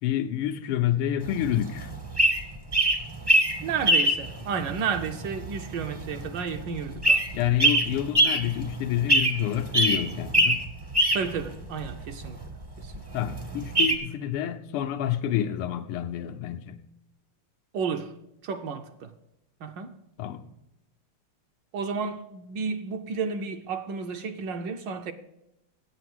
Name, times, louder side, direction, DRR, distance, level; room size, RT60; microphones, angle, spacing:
voice 1, 0.0-1.9 7.3-10.7 13.1-16.8 20.2-20.5, left 11 dB, 85° left, 1.6 m, -28 dB
sound 1, 1.3-14.0, right 1 dB, 25° right, 0.5 m, -24 dB
voice 2, 3.6-7.3 11.1-12.4 12.8-13.1 17.7-19.1 19.6-20.0 21.7-25.1, right 5 dB, 70° right, 1.2 m, -32 dB
8.5 x 8.0 x 7.7 m
omnidirectional pair, 2.4 m